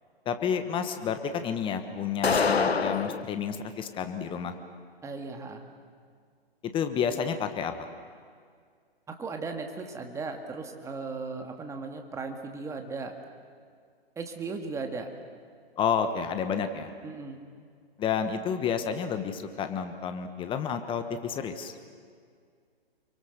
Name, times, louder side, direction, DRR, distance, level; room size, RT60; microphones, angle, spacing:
voice 1, 0.2-4.5 6.6-7.9 15.8-16.9 18.0-21.7, left 7 dB, 15° left, 8 dB, 1.3 m, -30 dB
sound 1, 2.2-3.2, left 5 dB, 90° left, 1.2 m, -25 dB
voice 2, 5.0-5.6 9.1-13.1 14.2-15.1 17.0-17.4, right 4 dB, 10° right, 4 dB, 2.0 m, -37 dB
30.0 x 23.5 x 6.7 m, 2.1 s
hypercardioid pair, 135°, 30 cm